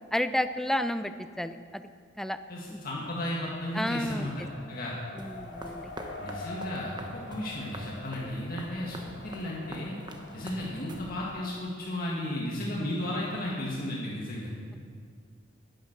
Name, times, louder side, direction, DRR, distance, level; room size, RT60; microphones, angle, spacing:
voice 1, 0.1-1.8 2.2-2.4 2.7-2.8 3.7-4.3 5.2-5.9, left 1 dB, ahead, 10 dB, 0.4 m, -31 dB
voice 2, 2.5-4.9 6.2-10.0 10.3-14.5, left 1 dB, 55° left, -4 dB, 1.8 m, -34 dB
Race car auto racing, 2.9-11.0, left 2 dB, 85° left, 1.7 m, -45 dB
sound 1, 5.2-11.5, right 1 dB, 25° right, 1.0 m, -46 dB
11.0 x 10.5 x 6.6 m, 2.1 s
head